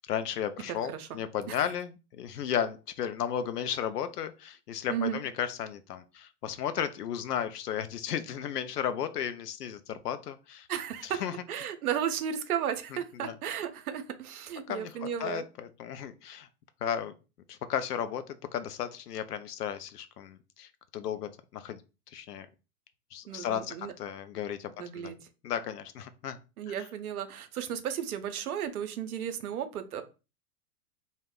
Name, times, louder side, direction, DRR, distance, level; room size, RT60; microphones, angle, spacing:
voice 1, 0.1-10.7 11.0-11.3 13.2-13.4 14.7-16.5 16.8-17.1 17.5-21.8 22.1-22.5 23.1-25.1 25.4-26.4 26.7-26.8, left 9 dB, 75° left, 0.5 m, -34 dB
voice 2, 0.7-1.1 1.5-1.6 4.9-5.2 10.7-11.2 11.5-15.4 23.3-23.9 24.8-25.2 26.6-30.0, right 9 dB, 70° right, 0.6 m, -34 dB
2.2 x 2.0 x 3.5 m
figure-of-eight pair, 105°, 47 cm